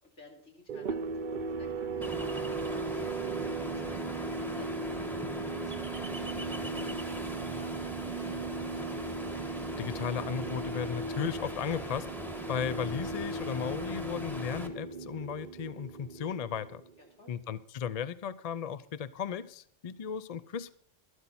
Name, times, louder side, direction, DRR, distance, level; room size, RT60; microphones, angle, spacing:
voice 1, 0.0-5.1 5.5-8.8 17.0-17.4, left 2 dB, 80° left, 0 dB, 3.4 m, -55 dB
sound 1, 0.7-17.0, right 3 dB, 50° right, 0.8 m, -37 dB
Ocean, 2.0-14.7, equal, ahead, 1.3 m, -40 dB
voice 2, 9.8-12.1 12.5-16.8 17.3-20.7, left 8 dB, 45° left, 15 dB, 0.5 m, -35 dB
13.0 x 12.5 x 4.2 m, 0.64 s
omnidirectional pair, 1.2 m